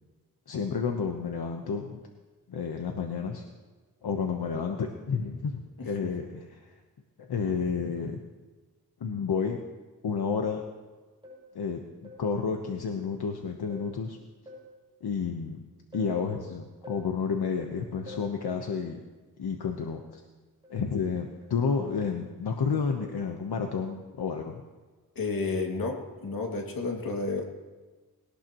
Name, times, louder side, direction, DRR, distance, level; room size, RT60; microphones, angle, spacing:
voice 1, 0.5-2.0 2.5-3.4 4.0-6.7 7.2-8.2 9.0-9.6 10.0-10.6 11.5-14.2 15.0-15.6 15.9-19.0 19.4-20.2 20.7-24.6, left 5 dB, 85° left, 3 dB, 1.1 m, -31 dB
voice 2, 5.8-6.1 25.2-27.5, left 3 dB, 65° left, 1 dB, 2.4 m, -31 dB
sound 1, 11.2-11.5 12.0-12.4 13.7-14.0 14.5-14.8 15.9-16.2 16.8-17.2 18.1-18.4 20.6-20.9 21.4-21.6, left 1 dB, 15° right, 6.6 m, -47 dB
21.0 x 18.0 x 3.1 m, 1.3 s
wide cardioid pair, 115°, 37 cm